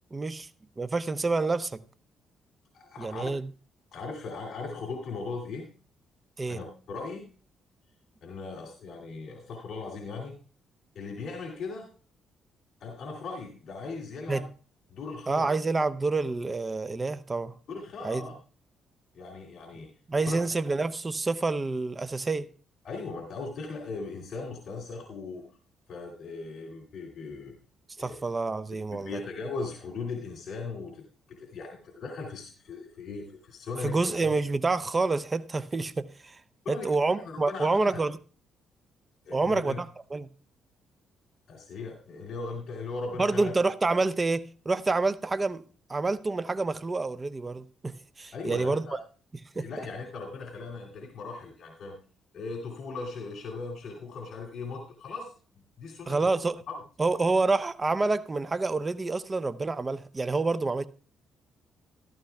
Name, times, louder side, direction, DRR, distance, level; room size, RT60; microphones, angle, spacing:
voice 1, 0.1-0.5 0.8-1.8 3.0-3.5 6.4-6.6 14.3-14.4 15.3-17.5 18.0-18.3 20.1-22.5 28.0-29.2 33.8-36.4 36.7-38.1 39.3-40.3 43.2-45.6 45.9-49.0 49.6-49.7 56.1-56.6 57.0-60.9, right 3 dB, 25° right, 0.6 m, -28 dB
voice 2, 2.7-3.3 3.9-5.7 6.5-7.3 8.2-10.4 10.9-11.9 12.8-14.5 14.9-15.5 17.7-18.3 19.1-19.9 20.2-20.4 22.8-25.4 25.9-27.5 28.0-28.2 28.9-31.0 31.3-34.4 36.6-38.0 39.2-39.8 41.5-43.5 48.3-49.0 49.6-52.0 52.3-55.3 55.8-56.3 56.7-56.8, left 4 dB, 65° left, 2.5 m, -38 dB
14.5 x 12.5 x 2.3 m
cardioid pair, 90°, 0 cm